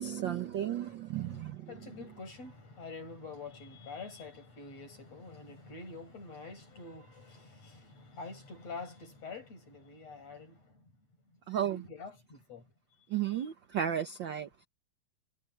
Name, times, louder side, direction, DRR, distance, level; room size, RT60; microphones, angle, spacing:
voice 1, 0.0-1.7 11.5-11.8 13.1-14.7, right 10 dB, 70° right, 1.1 m, -34 dB
voice 2, 1.2-10.9 11.3-12.7 13.4-13.5, left 4 dB, 60° left, 8.4 m, -47 dB
omnidirectional pair, 3.3 m